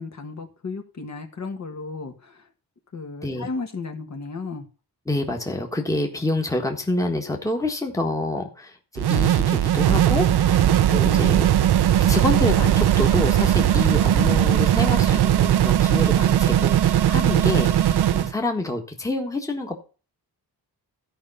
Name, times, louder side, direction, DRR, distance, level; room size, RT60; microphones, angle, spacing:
voice 1, 0.0-2.5 2.9-4.7 10.4-11.3 17.9-18.2, left 4 dB, 45° left, 4 dB, 1.7 m, -35 dB
voice 2, 5.1-10.6 10.9-11.5 12.1-19.8, left 2 dB, 10° left, 3 dB, 1.5 m, -27 dB
sound 1, 9.0-18.3, right 11 dB, 85° right, 0.7 m, -19 dB
14.0 x 5.3 x 5.6 m, 0.35 s
wide cardioid pair, 130°, 38 cm